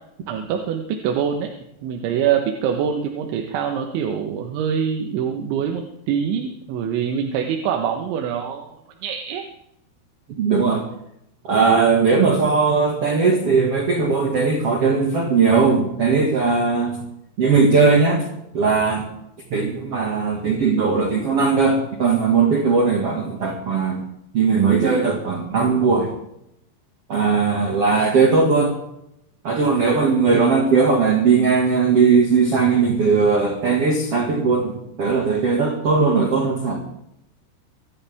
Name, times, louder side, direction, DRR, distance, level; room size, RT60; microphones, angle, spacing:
voice 1, 0.3-1.5 1.8-8.8 9.0-9.4 30.3-30.5, right 8 dB, 85° right, 2 dB, 3.7 m, -24 dB
voice 2, 10.4-10.8 11.4-17.0 17.4-18.2 18.5-19.1 19.5-24.0 24.3-26.1 27.1-28.7 29.4-36.8, right 4 dB, 45° right, 1 dB, 2.0 m, -18 dB
24.5 x 13.0 x 3.6 m, 0.80 s
omnidirectional pair, 5.2 m